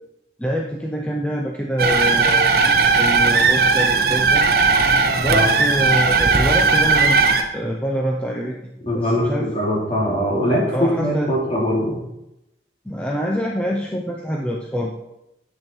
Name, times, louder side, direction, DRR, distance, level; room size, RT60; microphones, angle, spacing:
voice 1, 0.4-2.5 2.9-4.4 5.2-9.5 10.7-11.3 12.9-14.9, equal, 5° left, -1 dB, 0.7 m, -25 dB
sound 1, 1.8-7.4, right 4 dB, 55° right, 1.0 m, -17 dB
voice 2, 8.8-12.0, equal, 35° left, -3 dB, 2.9 m, -21 dB
10.0 x 8.2 x 4.5 m, 0.90 s
head